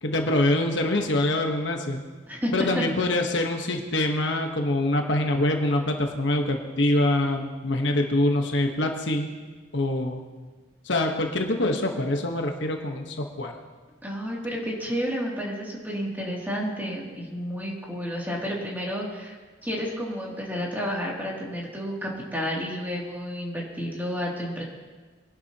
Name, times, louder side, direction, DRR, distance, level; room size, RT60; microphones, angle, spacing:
voice 1, 0.0-2.0 2.5-9.3 9.7-10.2 10.8-13.5, left 1 dB, 70° left, 3 dB, 1.2 m, -25 dB
voice 2, 2.3-2.8 14.0-19.4 19.6-24.6, equal, 10° right, -4 dB, 2.7 m, -31 dB
22.5 x 11.0 x 2.9 m, 1.4 s
head